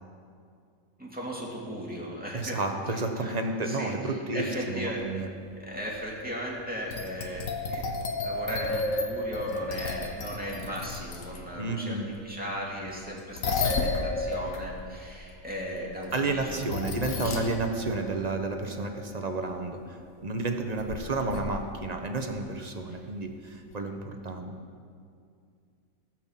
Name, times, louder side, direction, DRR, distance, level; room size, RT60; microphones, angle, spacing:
voice 1, 1.0-2.6 2.9-3.3 3.6-5.0 5.6-12.0 12.2-16.5 17.0-17.5 21.0-21.2, equal, 5° right, -4 dB, 2.5 m, -37 dB
voice 2, 2.3-5.3 11.6-12.1 16.1-24.5, right 2 dB, 30° right, 4 dB, 1.0 m, -31 dB
sound 1, 4.8-4.9 5.8-6.0 6.9-11.4 12.8-19.6 20.8-21.0 21.3-21.6 23.7-23.8, left 3 dB, 75° left, 1.5 m, -33 dB
18.0 x 6.0 x 7.5 m, 2.3 s
omnidirectional pair, 1.4 m